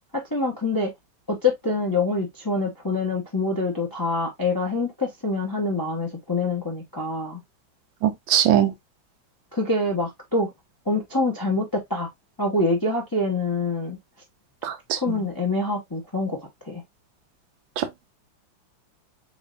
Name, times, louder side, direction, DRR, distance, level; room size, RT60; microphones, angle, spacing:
voice 1, 0.1-0.9 1.3-7.4 9.5-10.5 10.9-12.1 12.4-14.0 15.0-16.4 16.6-16.8, left 2 dB, 15° left, 0.9 m, -25 dB
voice 2, 8.0-8.7 14.6-15.2 17.8-17.9, right 10 dB, 85° right, 1.5 m, -21 dB
7.5 x 2.9 x 2.4 m
omnidirectional pair, 2.1 m